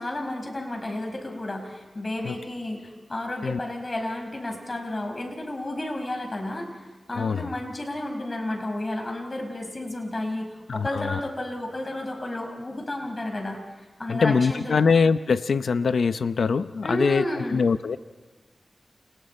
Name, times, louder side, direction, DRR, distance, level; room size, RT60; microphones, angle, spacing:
voice 1, 0.0-13.6 14.0-14.9 16.8-17.6, left 1 dB, 40° left, 3 dB, 5.3 m, -32 dB
voice 2, 7.1-7.5 10.7-11.2 14.1-18.0, left 5 dB, 90° left, 12 dB, 0.8 m, -23 dB
30.0 x 29.5 x 4.4 m, 1.3 s
wide cardioid pair, 65°, 0 cm